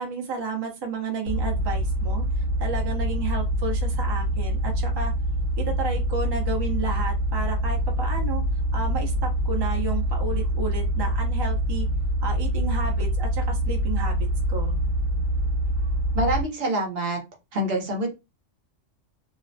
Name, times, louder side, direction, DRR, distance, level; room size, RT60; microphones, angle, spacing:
voice 1, 0.0-2.2 2.6-5.1 5.6-8.4 8.7-11.9 12.2-14.8, right 4 dB, 35° right, 1 dB, 0.4 m, -32 dB
sound 1, 1.3-16.4, equal, 85° right, 1.0 m, -25 dB
voice 2, 16.1-17.2 17.5-18.1, right 1 dB, 55° right, 2 dB, 0.9 m, -25 dB
2.4 x 2.0 x 2.5 m, 0.24 s
omnidirectional pair, 1.3 m